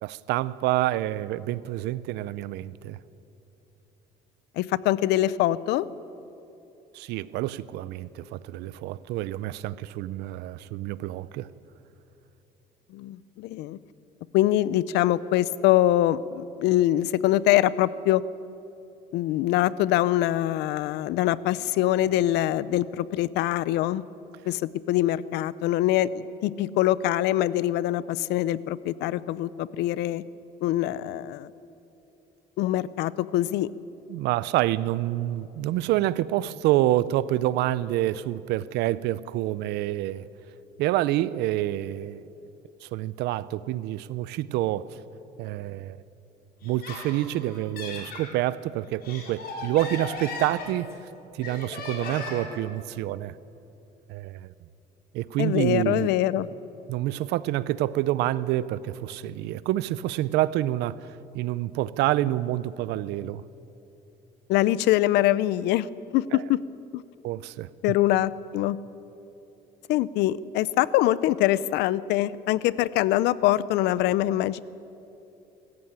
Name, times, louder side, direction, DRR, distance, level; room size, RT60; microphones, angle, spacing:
voice 1, 0.0-3.0 6.9-11.5 34.1-40.3 40.8-42.2 42.8-45.0 45.4-46.0 46.6-50.9 51.3-53.4 54.1-54.5 55.1-56.1 56.9-63.4 66.3-66.4 67.2-67.7, right 14 dB, 85° right, 0.6 m, -27 dB
voice 2, 4.6-5.9 12.9-13.8 14.3-18.2 19.1-24.0 24.5-30.2 30.6-31.5 32.6-33.7 55.4-56.5 64.5-65.9 66.1-66.6 66.9-67.0 67.8-68.8 69.9-74.6, left 14 dB, 85° left, 0.6 m, -24 dB
Laughter, 46.6-48.3 48.8-51.0 51.4-52.6, left 3 dB, 65° left, 4.9 m, -37 dB
23.0 x 14.5 x 8.9 m
cardioid pair, 110°, 17 cm